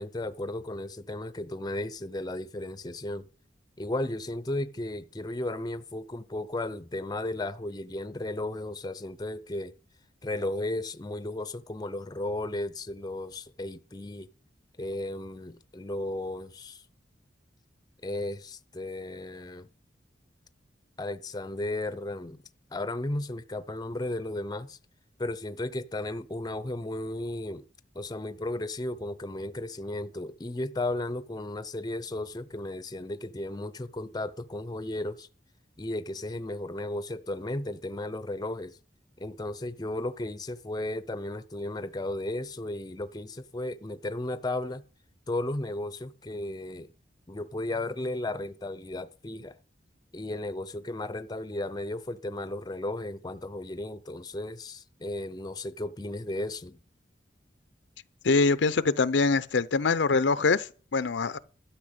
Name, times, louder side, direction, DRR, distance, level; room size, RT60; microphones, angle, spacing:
voice 1, 0.0-3.3 3.8-9.7 10.2-14.3 14.8-16.8 18.0-19.7 21.0-22.4 22.7-24.8 25.2-27.6 27.9-35.3 35.8-38.8 39.2-44.8 45.3-46.9 47.3-49.6 50.1-56.8, left 1 dB, 20° left, 0.6 m, -34 dB
voice 2, 58.2-61.4, left 4 dB, 80° left, 0.6 m, -24 dB
12.5 x 5.7 x 8.0 m
head